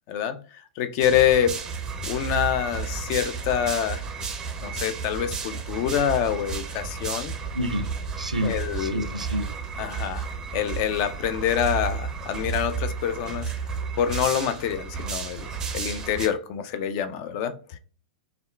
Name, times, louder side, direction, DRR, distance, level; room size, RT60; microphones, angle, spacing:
voice 1, 0.1-0.4 0.8-1.6 2.0-4.0 4.6-7.3 8.4-9.1 9.8-10.2 10.5-13.5 14.0-17.8, left 9 dB, 40° left, 0.3 m, -26 dB
sound 1, 1.0-16.3, right 5 dB, 15° right, 0.5 m, -32 dB
voice 2, 7.5-7.9 8.2-9.5, equal, 85° right, 0.4 m, -29 dB
3.4 x 2.3 x 2.2 m
figure-of-eight pair, 100°, 4 cm